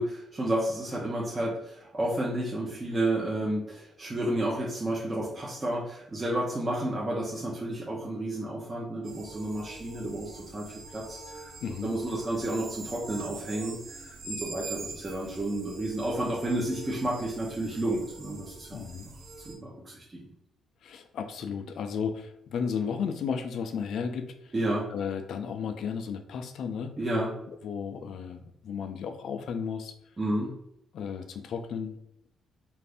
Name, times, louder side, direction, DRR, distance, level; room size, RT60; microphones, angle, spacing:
voice 1, 0.0-10.7 10.9-11.5 11.8-18.7 19.5-20.2 24.5-24.9 27.0-27.3 30.2-30.5, right 1 dB, 25° right, -5 dB, 0.7 m, -31 dB
sound 1, 9.0-19.5, right 3 dB, 70° right, 0.7 m, -44 dB
voice 2, 11.6-11.9 18.7-19.1 20.8-24.5 24.9-26.9 27.5-29.9 30.9-32.0, left 6 dB, 70° left, 8 dB, 0.4 m, -34 dB
2.5 x 2.5 x 3.4 m, 0.79 s
cardioid pair, 90°, 0 cm